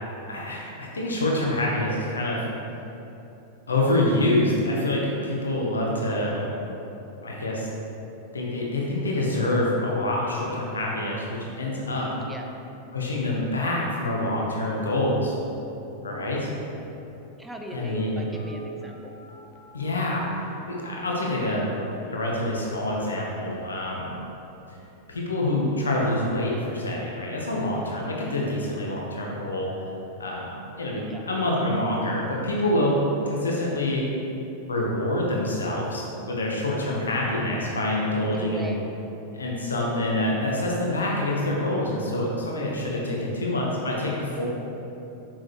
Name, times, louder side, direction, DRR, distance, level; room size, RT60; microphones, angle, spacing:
voice 1, 0.3-2.4 3.7-6.5 7.2-7.7 8.3-12.1 12.9-15.4 16.0-16.5 17.7-18.2 19.7-21.7 22.1-24.1 24.7-24.8 25.1-29.7 30.2-33.0 33.2-34.1 34.7-38.7 39.3-44.5, left 1 dB, 75° left, -3 dB, 1.1 m, -26 dB
voice 2, 17.4-19.2 31.0-31.2 38.3-38.9, right 1 dB, 5° right, 2 dB, 0.7 m, -39 dB
Telephone, 17.6-22.4 23.0-23.1 23.4-23.6 24.0-24.3 24.6-24.7, right 2 dB, 50° left, 1.0 m, -43 dB
6.3 x 6.2 x 3.2 m, 3.0 s
figure-of-eight pair, 90°, 0 cm